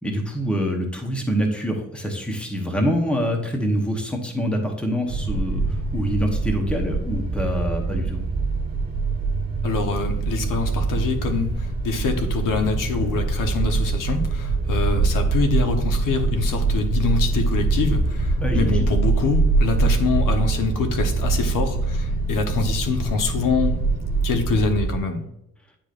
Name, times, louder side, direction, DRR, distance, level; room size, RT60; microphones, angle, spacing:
voice 1, 0.0-8.2 18.4-19.0, equal, 5° left, 0.9 m, -25 dB
sound 1, 5.1-25.0, right 3 dB, 25° right, 1.6 m, -24 dB
voice 2, 9.6-23.8 24.2-25.2, left 4 dB, 65° left, 1.0 m, -25 dB
9.2 x 4.9 x 2.5 m
cardioid pair, 165°, 34 cm